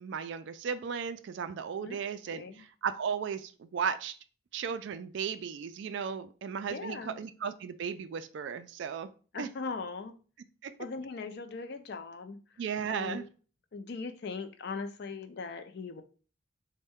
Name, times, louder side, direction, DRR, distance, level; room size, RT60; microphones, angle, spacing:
voice 1, 0.0-4.1 4.5-9.1 9.4-9.5 10.6-10.7 12.6-13.2, right 7 dB, 60° right, 11 dB, 0.3 m, -35 dB
voice 2, 2.3-2.6 6.7-7.2 9.3-10.1 10.8-12.4 12.9-13.3 13.7-16.0, left 4 dB, 55° left, 7 dB, 0.4 m, -39 dB
4.1 x 2.1 x 3.5 m, 0.38 s
head